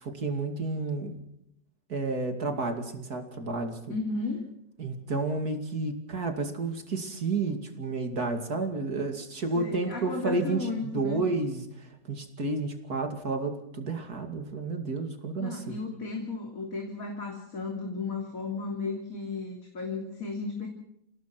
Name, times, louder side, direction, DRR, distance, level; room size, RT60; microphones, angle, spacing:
voice 1, 0.0-1.2 1.9-3.8 4.8-10.7 10.9-11.6 12.1-15.8, right 3 dB, 55° right, 5 dB, 2.9 m, -31 dB
voice 2, 3.9-4.4 9.5-11.2 15.4-20.7, left 3 dB, 50° left, 2 dB, 3.6 m, -34 dB
29.0 x 18.0 x 6.1 m, 0.78 s
omnidirectional pair, 1.9 m